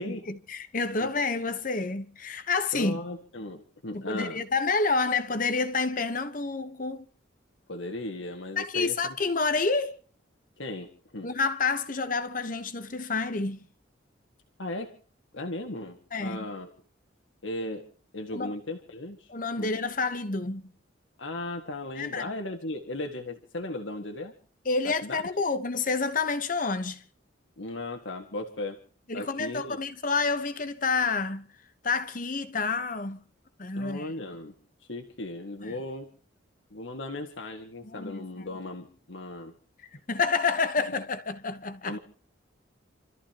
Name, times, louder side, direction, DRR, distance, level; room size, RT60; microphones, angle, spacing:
voice 1, 0.0-3.0 3.9-7.0 8.6-10.0 11.2-13.7 16.1-16.5 18.3-18.5 19.3-20.7 22.0-22.3 24.6-27.0 29.1-31.5 31.8-33.2 33.6-34.1 35.6-35.7 37.8-38.2 40.1-42.0, left 4 dB, 45° left, 1.1 m, -29 dB
voice 2, 2.7-4.4 7.7-9.1 10.6-11.3 14.6-14.9 15.3-16.7 17.4-17.8 18.1-19.3 19.6-19.7 21.2-24.3 24.8-25.2 27.6-28.8 29.1-29.8 33.8-34.5 34.9-36.1 36.7-39.5 40.9-41.0 41.8-42.0, left 2 dB, 75° left, 1.9 m, -36 dB
29.0 x 14.0 x 2.9 m
head